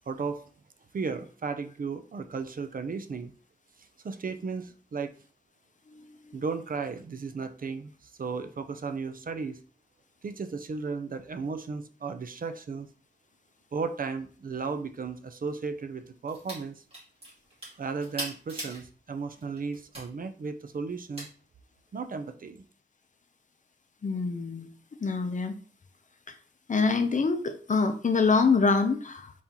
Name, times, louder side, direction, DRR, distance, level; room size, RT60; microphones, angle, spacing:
voice 1, 0.1-0.4 0.9-3.3 4.0-5.1 6.3-9.6 10.2-12.9 13.7-16.8 17.8-21.3 21.9-22.6, right 5 dB, 50° right, 9 dB, 0.5 m, -35 dB
voice 2, 5.9-6.4 24.0-24.7 25.0-25.5 26.3-26.4 26.7-29.3, left 4 dB, 45° left, 7 dB, 0.6 m, -25 dB
sound 1, 16.3-16.6 16.9-18.8 19.3-20.1 21.1-21.3, right 1 dB, 30° right, 2.2 m, -39 dB
4.1 x 3.7 x 2.9 m, 0.40 s
wide cardioid pair, 90°, 18 cm